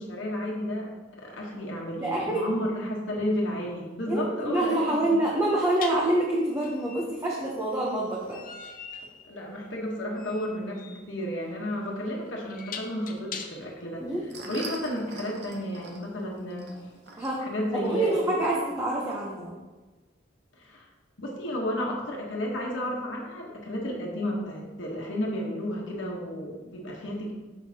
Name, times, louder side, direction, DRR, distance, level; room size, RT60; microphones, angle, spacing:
voice 1, 0.0-5.0 9.3-14.0 14.5-16.7 17.4-18.1 20.5-20.9 21.2-27.3, equal, 85° left, -2 dB, 1.1 m, -32 dB
voice 2, 1.9-2.4 4.1-8.4 14.0-14.2 17.2-17.4 17.7-19.6, right 1 dB, 15° right, -4 dB, 0.7 m, -26 dB
sound 1, 3.4-3.5 5.8-13.8, left 6 dB, 50° left, 0.5 m, -43 dB
sound 2, 14.0-19.1, right 3 dB, 60° right, 0.8 m, -45 dB
6.2 x 6.2 x 2.8 m, 1.2 s
head